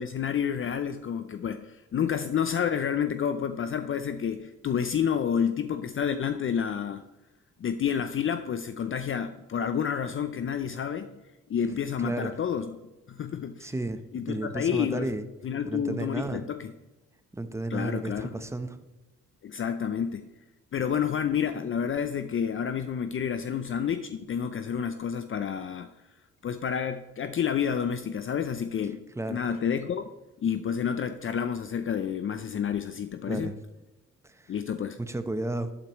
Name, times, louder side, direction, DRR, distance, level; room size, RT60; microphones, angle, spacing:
voice 1, 0.0-7.0 7.6-11.1 11.5-12.7 13.1-13.7 14.1-15.1 15.4-16.7 17.7-18.3 19.4-20.3 20.7-25.9 26.4-29.0 29.3-30.0 30.4-33.5 34.5-35.0, left 7 dB, 45° left, 10 dB, 0.6 m, -29 dB
voice 2, 12.0-12.3 13.6-14.0 14.3-15.3 15.7-16.4 17.4-18.8 29.2-29.4 33.3-33.5 34.2-34.5 35.0-35.7, right 2 dB, 10° right, 9 dB, 0.9 m, -32 dB
12.0 x 8.7 x 3.1 m, 1.1 s
cardioid pair, 90°, 30 cm